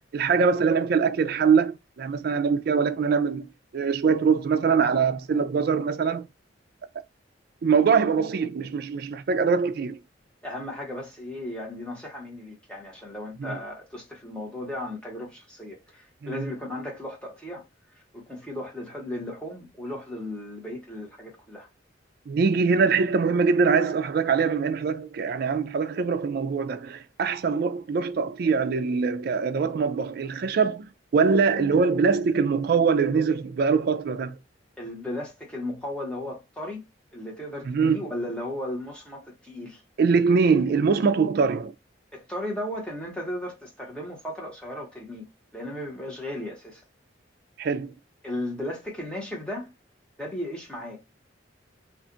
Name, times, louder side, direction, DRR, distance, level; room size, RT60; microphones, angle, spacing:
voice 1, 0.1-3.5 3.7-6.3 7.6-10.0 13.4-13.6 16.2-16.5 22.3-34.4 37.7-38.0 40.0-41.7 47.6-47.9, right 5 dB, 50° right, 0.3 m, -23 dB
voice 2, 10.4-17.7 18.1-21.7 34.8-36.8 37.1-39.8 42.1-45.2 45.5-46.8 48.2-49.7 50.2-51.1, left 1 dB, 5° left, 1.0 m, -35 dB
2.4 x 2.3 x 3.7 m
head